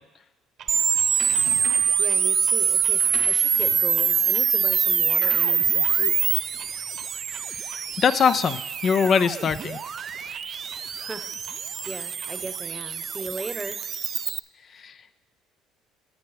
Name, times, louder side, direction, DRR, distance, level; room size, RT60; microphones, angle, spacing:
Clock, 0.6-12.6, right 7 dB, 60° right, 1.0 m, -50 dB
sound 1, 0.7-14.4, right 7 dB, 45° right, 0.3 m, -24 dB
sound 2, 1.2-2.0 2.8-7.5, left 2 dB, 85° left, 1.9 m, -44 dB
voice 1, 2.0-6.2 11.0-13.8, right 3 dB, 20° right, 11 dB, 0.9 m, -38 dB
voice 2, 8.0-9.8 14.7-15.0, left 6 dB, 45° left, 13 dB, 0.4 m, -22 dB
15.0 x 8.2 x 3.3 m, 1.0 s
hypercardioid pair, 65°, 0 cm